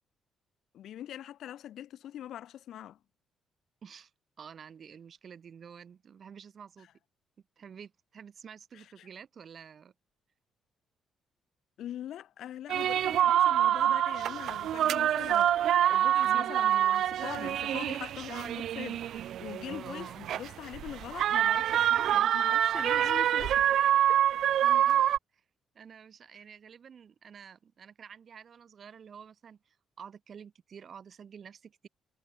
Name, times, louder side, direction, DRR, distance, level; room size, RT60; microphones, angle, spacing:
voice 1, 0.7-3.0 8.7-9.1 11.8-24.2, left 11 dB, 75° left, 2.6 m, -43 dB
voice 2, 4.4-6.9 7.6-9.9 16.2-16.5 19.7-20.2 24.6-25.1 25.3-25.4 25.7-31.9, right 7 dB, 50° right, 4.4 m, -49 dB
sound 1, 12.7-25.2, right 11 dB, 70° right, 0.4 m, -26 dB
cardioid pair, 90°, 0 cm